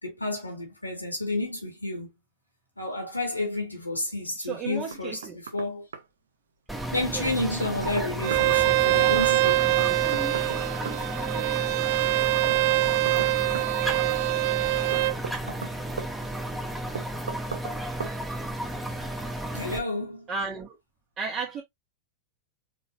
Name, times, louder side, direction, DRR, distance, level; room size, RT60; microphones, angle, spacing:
voice 1, 0.0-2.1 2.8-5.2 5.5-5.9 6.9-9.5 19.5-20.3, left 2 dB, 85° left, 1.9 m, -30 dB
voice 2, 4.4-5.4 7.1-7.3 11.3-11.8 20.3-20.8 21.2-21.6, right 5 dB, 30° right, 1.5 m, -34 dB
Knock, 4.9-5.7 5.9-6.0 7.3-8.5 9.8-11.0 12.5-13.7 14.9-16.1 17.0-17.8 18.0-18.2, right 6 dB, 65° right, 0.8 m, -37 dB
sound 1, 6.7-19.8, right 1 dB, 5° right, 1.3 m, -33 dB
Bowed string instrument, 8.2-15.2, right 21 dB, 45° right, 0.3 m, -24 dB
4.7 x 4.2 x 2.7 m
figure-of-eight pair, 90°, 0 cm